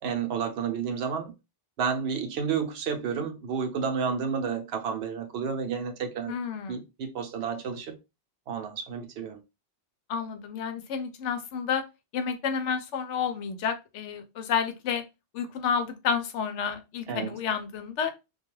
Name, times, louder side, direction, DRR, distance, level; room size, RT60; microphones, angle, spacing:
voice 1, 0.0-1.3 1.8-6.4 6.7-7.9 8.5-9.4 17.1-17.3, right 6 dB, 65° right, 0.8 m, -31 dB
voice 2, 6.3-6.8 10.1-11.8 12.1-15.0 15.3-18.1, left 6 dB, 75° left, 0.9 m, -30 dB
2.3 x 2.2 x 3.0 m
omnidirectional pair, 1.2 m